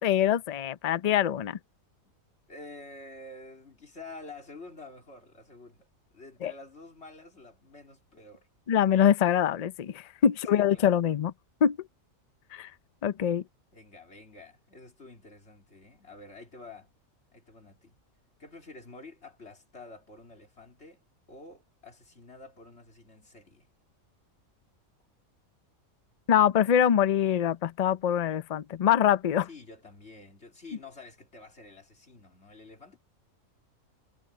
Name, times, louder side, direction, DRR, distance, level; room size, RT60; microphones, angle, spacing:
voice 1, 0.0-1.6 6.4-6.5 8.7-11.3 11.6-11.8 12.5-12.7 13.0-13.4 26.3-29.5, left 9 dB, 85° left, 0.3 m, -24 dB
voice 2, 2.5-8.5 10.5-10.9 13.7-16.9 17.3-18.0 18.4-21.0 21.3-23.7 29.5-33.0, left 3 dB, 50° left, 3.7 m, -49 dB
omnidirectional pair, 1.5 m